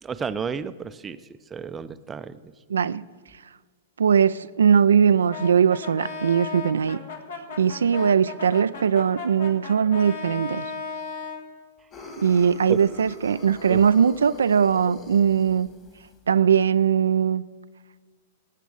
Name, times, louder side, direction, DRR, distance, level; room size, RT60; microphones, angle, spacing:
voice 1, 0.0-1.2 1.5-2.5 12.7-12.9 13.7-13.8, right 6 dB, 20° right, 13 dB, 0.5 m, -32 dB
voice 2, 2.7-3.0 4.0-7.0 7.6-10.6 12.2-15.7 16.3-17.4, right 7 dB, 75° right, 14 dB, 0.3 m, -20 dB
Brass instrument, 5.3-11.5, left 4 dB, 65° left, 2.0 m, -36 dB
sound 1, 11.9-16.2, left 1 dB, 30° left, 2.3 m, -42 dB
18.0 x 8.3 x 5.2 m, 1.5 s
figure-of-eight pair, 105°, 0 cm